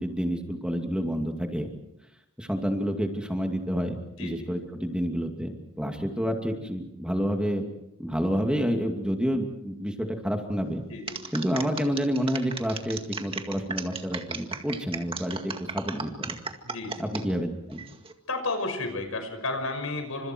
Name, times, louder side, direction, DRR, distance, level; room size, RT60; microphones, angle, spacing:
voice 1, 0.0-1.7 2.4-7.6 8.0-10.8 11.3-16.3 17.0-17.8, equal, 5° right, 3 dB, 2.5 m, -29 dB
voice 2, 10.9-11.2 16.6-17.0 18.3-20.3, left 2 dB, 80° left, 7 dB, 5.9 m, -32 dB
sound 1, 11.1-17.2 17.7-18.1, right 4 dB, 25° right, 2.0 m, -35 dB
30.0 x 26.5 x 4.6 m, 0.81 s
head